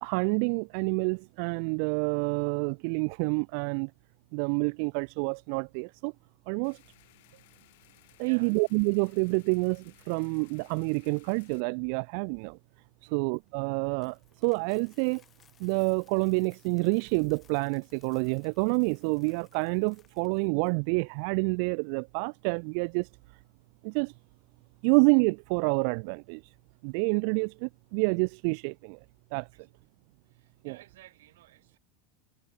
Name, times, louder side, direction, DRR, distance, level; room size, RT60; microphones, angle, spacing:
voice 1, 0.0-3.9 4.3-6.1 6.5-6.8 8.2-12.6 13.1-14.2 14.4-15.2 15.6-23.1 23.8-24.1 24.8-26.4 26.8-29.0 29.3-29.5 30.6-30.7, right 40 dB or more, 45° right, 0.3 m, -28 dB
sound 1, 6.6-11.6, left 21 dB, 60° left, 2.0 m, -60 dB
voice 2, 8.2-8.6 13.0-13.2 29.5-29.8 30.2-31.8, right 15 dB, 85° right, 7.6 m, -55 dB
Coin (dropping), 13.3-20.7, left 8 dB, 20° left, 1.7 m, -63 dB
supercardioid pair, 175°, 0 cm